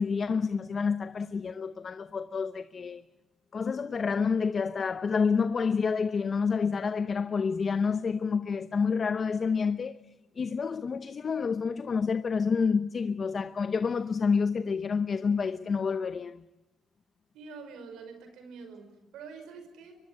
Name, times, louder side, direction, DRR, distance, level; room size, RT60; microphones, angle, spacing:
voice 1, 0.0-3.0 3.5-10.0 10.4-16.4, left 5 dB, 40° left, 0.9 m, -28 dB
voice 2, 17.3-20.0, right 5 dB, 85° right, 5.4 m, -46 dB
24.0 x 22.5 x 9.4 m
cardioid pair, 90°, 0 cm